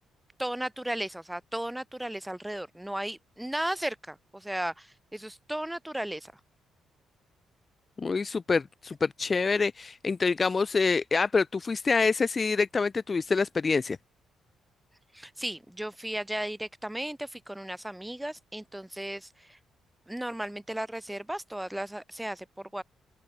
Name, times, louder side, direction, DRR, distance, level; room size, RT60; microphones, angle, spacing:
voice 1, 0.4-6.4 15.1-19.6 20.1-22.8, right 1 dB, 5° right, 3.5 m, -35 dB
voice 2, 8.0-14.0, left 4 dB, 30° left, 1.3 m, -26 dB
open air
cardioid pair, 90°, 0 cm